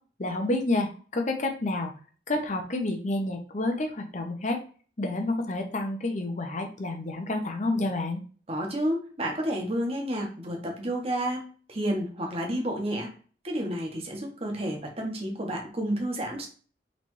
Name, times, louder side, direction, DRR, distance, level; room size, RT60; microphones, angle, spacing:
voice 1, 0.2-1.9 2.3-4.6 5.0-8.2, left 2 dB, 40° left, 3 dB, 0.8 m, -29 dB
voice 2, 8.5-13.1 13.4-16.5, right 1 dB, 35° right, 1 dB, 1.1 m, -30 dB
4.1 x 3.3 x 3.1 m, 0.40 s
head